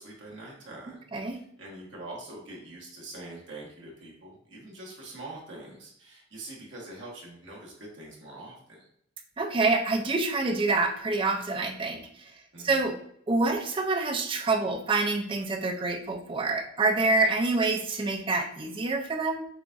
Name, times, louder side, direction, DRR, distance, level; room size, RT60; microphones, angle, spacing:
voice 1, 0.0-1.0 1.3-8.9 12.5-12.8, right 2 dB, 55° right, -3 dB, 1.3 m, -44 dB
voice 2, 9.4-12.3 12.6-13.0 13.3-19.5, right 3 dB, 25° right, 5 dB, 0.4 m, -27 dB
6.8 x 2.4 x 2.5 m, 0.66 s
head